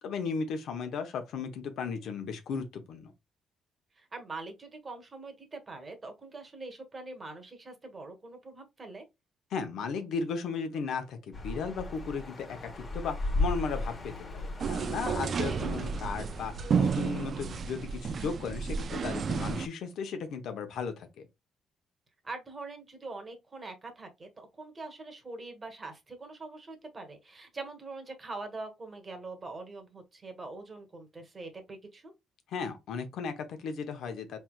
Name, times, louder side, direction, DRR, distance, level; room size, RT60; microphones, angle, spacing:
voice 1, 0.0-3.1 9.5-21.1 32.5-34.4, left 5 dB, 75° left, 0.9 m, -35 dB
voice 2, 4.0-9.0 15.4-15.7 22.2-32.1, right 3 dB, 30° right, 1.4 m, -43 dB
sound 1, 11.3-17.2, left 2 dB, 30° left, 1.5 m, -36 dB
sound 2, 14.6-19.7, right 6 dB, 50° right, 0.5 m, -32 dB
4.4 x 3.4 x 2.4 m
cardioid pair, 90°, 0 cm